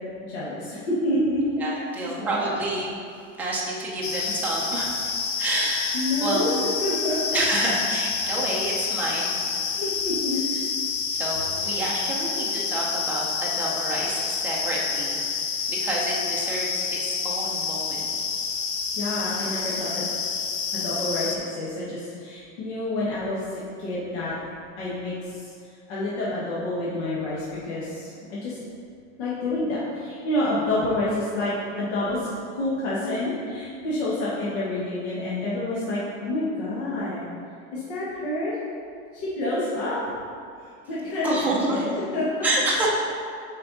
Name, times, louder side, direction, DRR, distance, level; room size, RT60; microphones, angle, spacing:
voice 1, 0.2-1.4 1.7-2.5 5.4-5.6 5.9-6.5 6.8-7.4 9.7-10.4 11.6-11.8 18.9-20.0 20.7-24.3 24.8-25.5 25.9-28.6 29.1-37.2 37.7-38.5 39.1-40.0 40.9-42.3, left 1 dB, 65° left, -8 dB, 1.5 m, -28 dB
voice 2, 1.6-2.9 3.4-4.9 5.4-6.5 7.3-9.6 11.2-15.2 15.7-18.1 41.2-41.8 42.4-42.9, right 2 dB, 5° right, -5 dB, 0.5 m, -28 dB
sound 1, 4.0-21.4, left 5 dB, 45° left, 0.7 m, -28 dB
7.8 x 4.5 x 4.0 m, 2.3 s
supercardioid pair, 180°, 36 cm